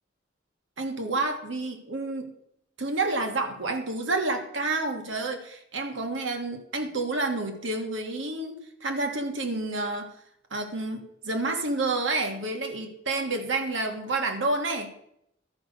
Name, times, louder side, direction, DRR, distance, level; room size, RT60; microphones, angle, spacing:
voice 1, 0.8-2.3 2.8-10.1 10.5-14.9, right 2 dB, 90° right, 5 dB, 1.5 m, -29 dB
12.0 x 5.2 x 6.6 m, 0.76 s
head